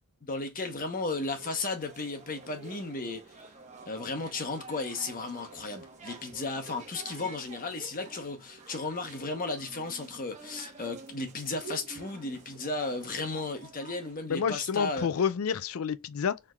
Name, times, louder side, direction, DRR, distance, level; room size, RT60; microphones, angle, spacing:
voice 1, 0.2-3.2 3.8-15.1, left 3 dB, 40° left, 1.0 m, -34 dB
sound 1, 1.1-14.2, right 4 dB, 35° right, 1.0 m, -49 dB
voice 2, 14.3-16.4, left 7 dB, 70° left, 0.4 m, -29 dB
4.6 x 3.6 x 2.3 m
head